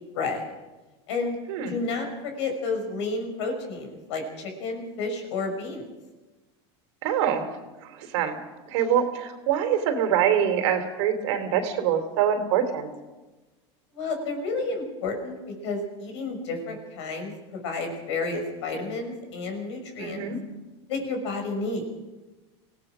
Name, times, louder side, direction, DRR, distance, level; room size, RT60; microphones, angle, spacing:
voice 1, 0.1-0.4 1.1-1.4 1.7-5.8 13.9-15.4 15.6-20.2 20.9-21.8, left 3 dB, 85° left, 4 dB, 6.0 m, -31 dB
voice 2, 7.0-7.5 7.8-8.4 8.7-12.9 20.0-20.4, right 9 dB, 75° right, 7 dB, 3.2 m, -25 dB
25.0 x 17.5 x 6.3 m, 1.2 s
supercardioid pair, 130°, 15 cm